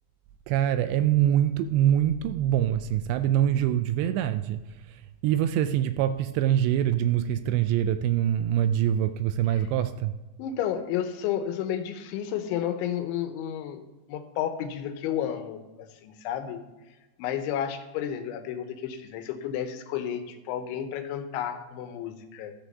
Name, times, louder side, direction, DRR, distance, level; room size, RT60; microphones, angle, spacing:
voice 1, 0.5-4.6 4.9-10.2, right 11 dB, 85° right, 2.6 m, -24 dB
voice 2, 10.4-13.8 14.1-16.6 17.2-22.5, left 9 dB, 85° left, 3.2 m, -32 dB
13.5 x 5.0 x 6.6 m
omnidirectional pair, 5.2 m